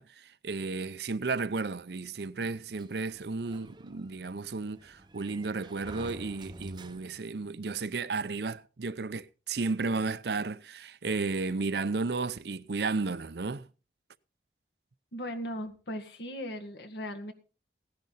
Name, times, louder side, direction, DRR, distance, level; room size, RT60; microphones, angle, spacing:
voice 1, 0.0-13.7, right 4 dB, 65° right, 0.6 m, -33 dB
Sliding door, 2.8-7.4, right 2 dB, 25° right, 0.7 m, -49 dB
voice 2, 15.1-17.3, equal, 70° left, 1.9 m, -38 dB
16.5 x 10.5 x 4.1 m
head